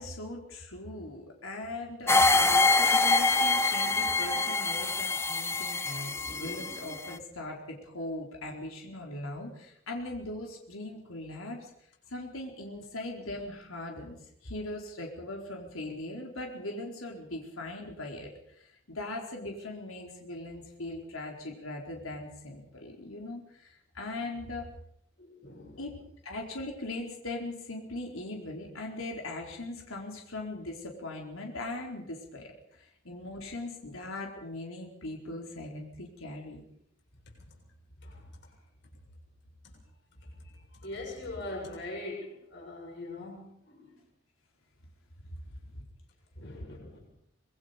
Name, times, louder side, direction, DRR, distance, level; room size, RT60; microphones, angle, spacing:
voice 1, 0.0-11.7 12.1-14.2 14.4-24.7 25.8-36.6 45.7-45.8, left 2 dB, 90° left, 0 dB, 4.3 m, -40 dB
sound 1, 2.1-7.2, left 3 dB, 10° left, 0.9 m, -25 dB
voice 2, 25.2-25.8 37.4-37.6 38.0-38.6 38.8-39.0 39.6-39.8 40.1-44.0 46.4-47.1, left 2 dB, 55° left, -1 dB, 7.3 m, -43 dB
25.5 x 22.0 x 5.2 m, 0.71 s
head